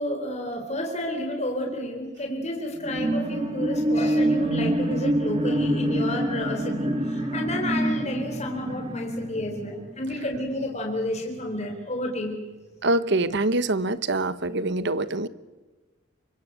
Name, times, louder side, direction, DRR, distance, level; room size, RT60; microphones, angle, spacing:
voice 1, 0.0-12.4, left 1 dB, 35° left, 2 dB, 4.1 m, -31 dB
sound 1, 2.8-10.5 11.0-11.1, right 1 dB, 30° right, 3.5 m, -26 dB
voice 2, 12.8-15.3, right 2 dB, 65° right, 14 dB, 1.2 m, -24 dB
28.5 x 24.5 x 8.3 m, 1.2 s
head